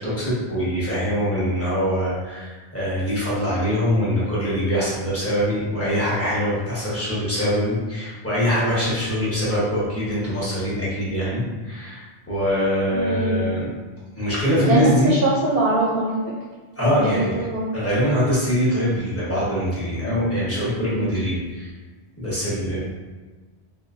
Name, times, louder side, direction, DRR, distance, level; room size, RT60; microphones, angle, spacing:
voice 1, 0.0-13.7 14.2-15.2 16.8-17.4 17.7-21.7 22.2-22.8, equal, 15° left, -10 dB, 1.0 m, -23 dB
voice 2, 12.9-13.6 14.6-16.2 16.8-17.7 20.0-20.4 20.8-21.1, right 2 dB, 60° right, -5 dB, 0.8 m, -23 dB
3.2 x 2.8 x 2.5 m, 1.3 s
omnidirectional pair, 1.2 m